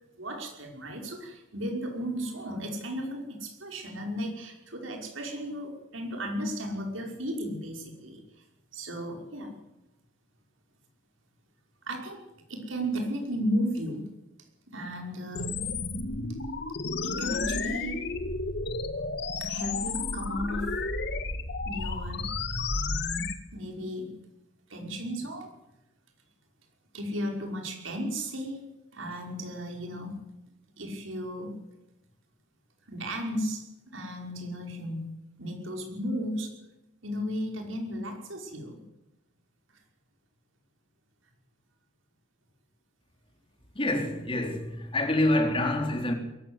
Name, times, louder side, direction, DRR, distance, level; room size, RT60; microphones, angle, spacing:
voice 1, 0.2-8.2 8.7-9.6 11.9-12.2 12.5-14.1 14.7-15.6 17.0-18.0 19.4-20.7 21.6-22.3 23.5-24.2 24.7-25.6 26.9-30.2 30.8-31.6 32.9-33.6 33.9-35.1 35.4-36.5 37.0-38.8, equal, 90° right, 5.6 m, -34 dB
sound 1, 15.3-23.3, left 3 dB, 60° left, 1.9 m, -32 dB
voice 2, 43.7-46.1, left 1 dB, 25° left, 3.9 m, -26 dB
22.5 x 14.5 x 9.8 m
head